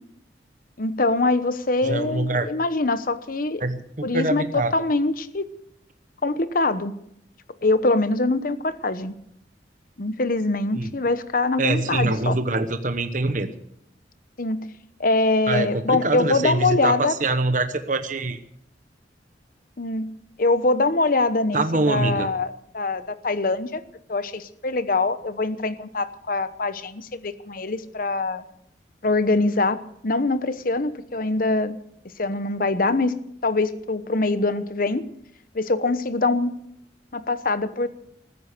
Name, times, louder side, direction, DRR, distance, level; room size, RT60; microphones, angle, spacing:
voice 1, 0.8-3.6 4.0-5.4 6.2-6.9 7.6-9.1 10.0-12.4 14.4-14.7 15.0-17.2 19.8-20.1 20.4-23.8 24.1-28.4 29.0-31.8 32.2-33.1 33.4-35.0 35.5-36.5 37.1-37.9, left 3 dB, 50° left, 12 dB, 1.0 m, -23 dB
voice 2, 1.8-2.5 3.6-4.7 10.7-10.9 11.6-13.5 15.5-18.4 21.5-22.3, right 2 dB, 45° right, 8 dB, 1.0 m, -24 dB
20.0 x 9.7 x 6.7 m, 0.73 s
head